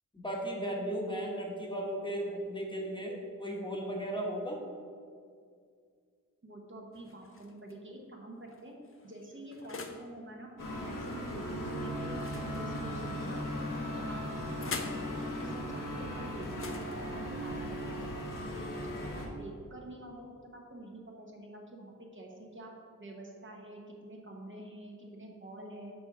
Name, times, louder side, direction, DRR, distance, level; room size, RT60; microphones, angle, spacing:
voice 1, 0.1-4.6, right 1 dB, 15° left, -2 dB, 1.0 m, -36 dB
voice 2, 6.4-8.7 9.0-10.5 10.8-13.6 14.0-18.2 18.5-20.2 20.5-22.7 23.0-25.9, right 1 dB, 35° right, -1 dB, 0.9 m, -47 dB
sound 1, 6.9-7.7 8.5-10.1 12.1-13.2 14.1-15.1 16.4-18.4, left 4 dB, 40° left, 0.6 m, -45 dB
sound 2, 10.6-19.3, equal, 70° left, 1.3 m, -37 dB
5.9 x 4.3 x 5.7 m, 2.2 s
wide cardioid pair, 110°, 33 cm